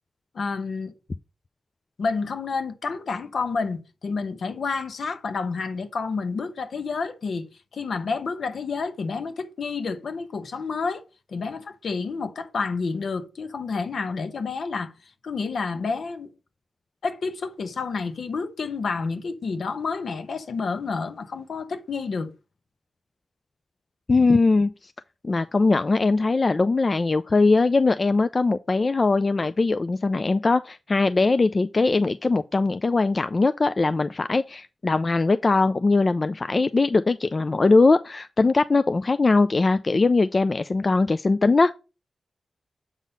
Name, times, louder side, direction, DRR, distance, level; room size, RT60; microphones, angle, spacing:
voice 1, 0.3-0.9 2.0-7.5 7.7-11.0 11.3-14.9 15.2-16.3 17.0-22.3, left 4 dB, 75° left, 0.9 m, -29 dB
voice 2, 24.1-24.9 25.2-41.7, left 3 dB, 45° left, 0.4 m, -21 dB
7.3 x 4.0 x 5.2 m
cardioid pair, 50°, 0 cm